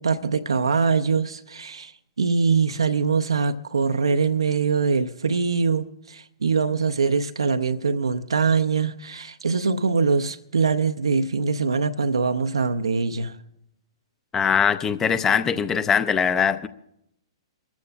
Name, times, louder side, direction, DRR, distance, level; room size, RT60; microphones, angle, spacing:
voice 1, 0.0-1.9 2.2-13.4, right 5 dB, 75° right, 0.6 m, -23 dB
voice 2, 14.3-16.7, left 7 dB, 15° left, 0.6 m, -21 dB
27.5 x 14.0 x 2.2 m
figure-of-eight pair, 110°, 3 cm